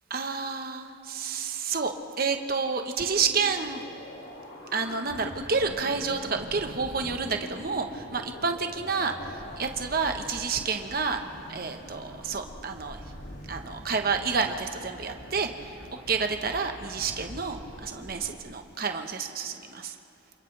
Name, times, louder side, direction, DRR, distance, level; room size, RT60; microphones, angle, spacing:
voice 1, 0.1-3.8 4.7-11.2 11.5-13.0 13.5-15.8 16.1-19.9, right 5 dB, 50° right, 5 dB, 1.2 m, -29 dB
sound 1, 3.1-18.4, equal, 65° left, 2.4 m, -44 dB
28.5 x 27.0 x 3.4 m, 2.8 s
head